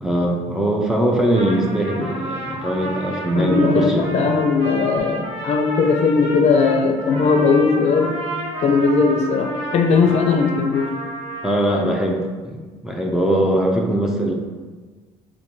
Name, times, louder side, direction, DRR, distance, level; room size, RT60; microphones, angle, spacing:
voice 1, 0.0-4.3 11.4-14.3, right 1 dB, 5° right, -2 dB, 0.4 m, -21 dB
Trumpet, 1.1-12.0, right 1 dB, 60° right, 1.2 m, -31 dB
voice 2, 3.3-8.2 8.6-10.9, left 4 dB, 55° left, 4 dB, 0.5 m, -18 dB
4.3 x 2.6 x 2.7 m, 1.4 s
cardioid pair, 105°, 13 cm